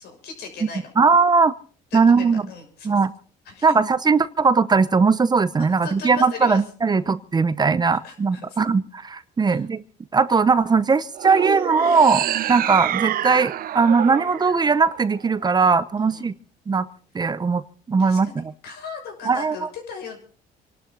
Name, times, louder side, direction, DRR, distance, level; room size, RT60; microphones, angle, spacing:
voice 1, 0.0-0.9 1.9-3.0 3.4-3.7 5.8-7.1 8.0-8.6 9.5-9.6 16.0-16.3 18.0-20.2, left 5 dB, 75° left, 3 dB, 6.5 m, -37 dB
voice 2, 1.0-1.5 1.9-2.4 2.8-3.1 3.6-9.8 10.1-16.3 16.7-16.9 17.1-17.6 17.9-18.5 19.3-19.6, right 4 dB, 25° right, 15 dB, 0.8 m, -19 dB
sound 1, 11.1-15.5, right 12 dB, 60° right, 0.8 m, -27 dB
27.5 x 12.0 x 3.9 m, 0.43 s
cardioid pair, 110°, 17 cm